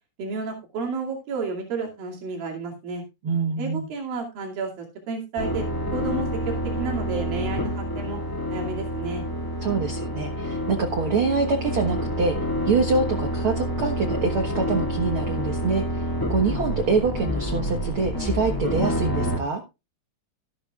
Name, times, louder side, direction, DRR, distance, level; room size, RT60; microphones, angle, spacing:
voice 1, 0.2-3.0 3.6-5.6 5.9-8.2 8.5-9.2, right 4 dB, 85° right, 0 dB, 4.3 m, -31 dB
voice 2, 3.2-3.9 9.6-12.3 12.6-19.6, right 4 dB, 55° right, 4 dB, 1.5 m, -25 dB
sound 1, 5.4-19.4, equal, 10° left, 1.2 m, -28 dB
13.0 x 13.0 x 2.4 m, 0.26 s
omnidirectional pair, 4.0 m